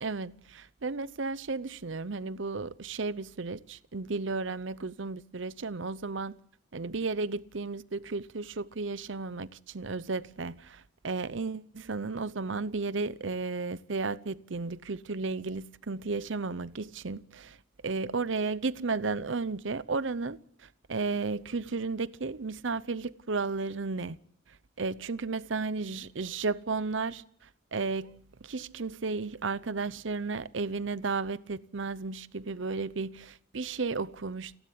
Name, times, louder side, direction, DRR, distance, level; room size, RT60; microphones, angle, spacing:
voice 1, 0.0-6.4 6.7-17.6 17.8-24.2 24.8-27.2 27.7-34.6, right 4 dB, 65° right, 0.8 m, -33 dB
29.5 x 11.5 x 8.5 m
head